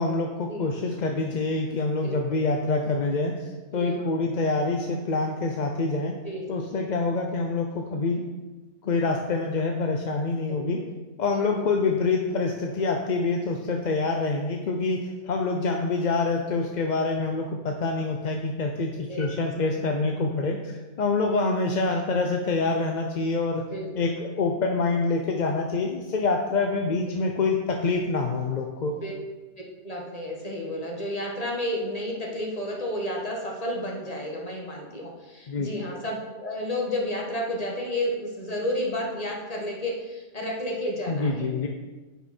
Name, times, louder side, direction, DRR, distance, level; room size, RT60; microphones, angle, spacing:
voice 1, 0.0-3.3 3.7-6.1 6.5-8.2 8.8-10.8 11.2-15.0 15.3-23.6 24.0-28.9 35.5-35.7 41.1-41.7, left 3 dB, 45° left, 2 dB, 0.6 m, -26 dB
voice 2, 2.0-2.4 3.7-4.0 6.2-6.5 10.5-10.6 11.3-11.4 19.1-19.8 23.6-24.1 27.0-27.1 28.9-29.1 29.8-41.7, left 1 dB, 30° left, -1 dB, 1.7 m, -32 dB
10.0 x 5.6 x 4.4 m, 1.2 s
omnidirectional pair, 1.3 m